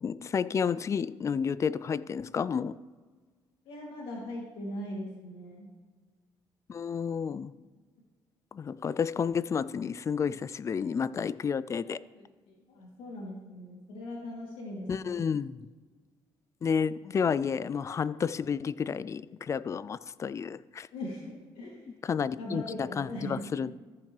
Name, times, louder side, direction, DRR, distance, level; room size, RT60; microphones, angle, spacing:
voice 1, 0.0-2.8 6.7-7.5 8.5-12.0 14.9-15.6 16.6-20.9 22.0-23.7, left 6 dB, 35° left, 0.3 m, -31 dB
voice 2, 3.6-5.7 10.7-10.9 11.8-15.2 20.9-21.9 22.4-23.5, left 1 dB, 90° left, 2.7 m, -40 dB
14.5 x 6.7 x 3.3 m
cardioid pair, 95°, 9 cm